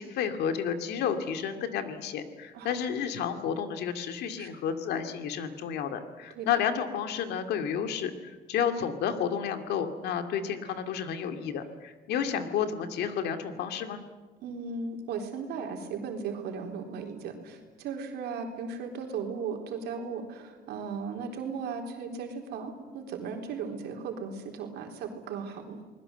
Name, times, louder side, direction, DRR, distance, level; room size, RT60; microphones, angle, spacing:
voice 1, 0.0-14.0, left 8 dB, 75° left, 7 dB, 2.4 m, -31 dB
voice 2, 14.4-25.8, right 5 dB, 75° right, 3 dB, 4.0 m, -36 dB
29.0 x 20.5 x 8.0 m, 1.4 s
cardioid pair, 110°, 17 cm